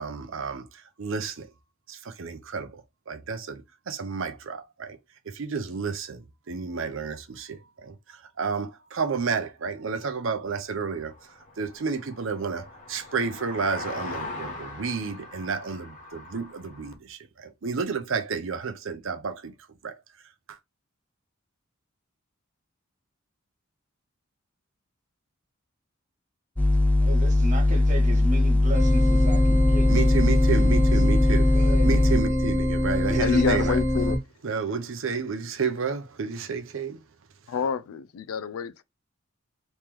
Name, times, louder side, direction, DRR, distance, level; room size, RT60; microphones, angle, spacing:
voice 1, 0.0-1.5 1.9-2.8 3.1-5.0 5.3-11.1 11.6-19.5 19.8-19.9 29.9-31.5 31.8-33.8 34.4-37.0, right 5 dB, 65° right, 0.6 m, -31 dB
sound 1, 11.0-16.9, left 2 dB, 35° left, 1.2 m, -40 dB
sound 2, 26.6-32.2, left 2 dB, 5° left, 0.4 m, -20 dB
voice 2, 27.0-32.0 33.1-33.7, equal, 35° right, 1.2 m, -36 dB
sound 3, 28.7-34.2, left 1 dB, 15° right, 0.8 m, -25 dB
voice 3, 33.2-34.2 37.5-38.8, left 6 dB, 85° left, 0.4 m, -27 dB
3.1 x 3.0 x 3.5 m
head